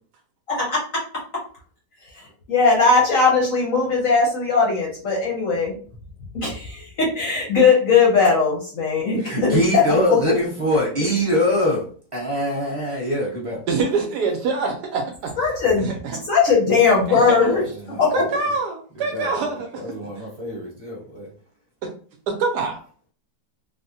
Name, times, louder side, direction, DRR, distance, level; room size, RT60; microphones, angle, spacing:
voice 1, 0.5-0.8 2.1-5.7 6.3-10.0 15.4-16.0 16.2-18.2, left 4 dB, 60° left, 0.9 m, -19 dB
voice 2, 9.2-13.6 17.9-18.0 18.9-21.3, equal, 25° right, 0.8 m, -24 dB
voice 3, 13.7-15.3 15.8-16.2 17.1-17.4 18.1-19.8 20.2-20.3 21.8-21.9 22.3-22.8, right 4 dB, 75° right, 1.0 m, -25 dB
3.4 x 2.1 x 2.7 m
omnidirectional pair, 2.0 m